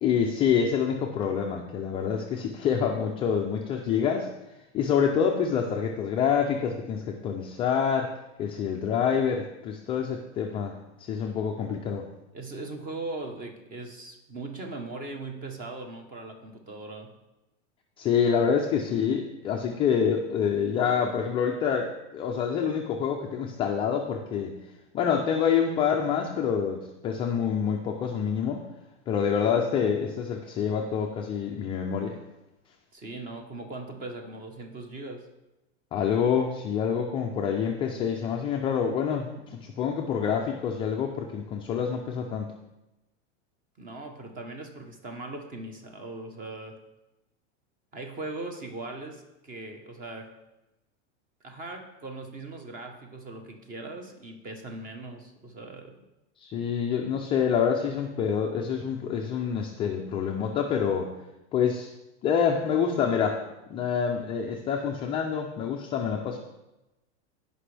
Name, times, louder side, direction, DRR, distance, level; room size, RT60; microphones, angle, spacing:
voice 1, 0.0-4.3 4.7-8.1 8.4-12.1 18.0-24.6 24.9-28.6 29.1-32.2 35.9-42.5 56.4-61.1 61.5-61.9 62.2-63.4 63.7-66.4, left 7 dB, 15° left, 1 dB, 0.3 m, -27 dB
voice 2, 12.3-17.1 18.2-18.5 32.9-35.3 43.8-46.8 47.9-50.4 51.4-56.0, right 2 dB, 25° right, 5 dB, 1.0 m, -39 dB
16.0 x 5.3 x 3.3 m, 0.99 s
supercardioid pair, 145°, 35 cm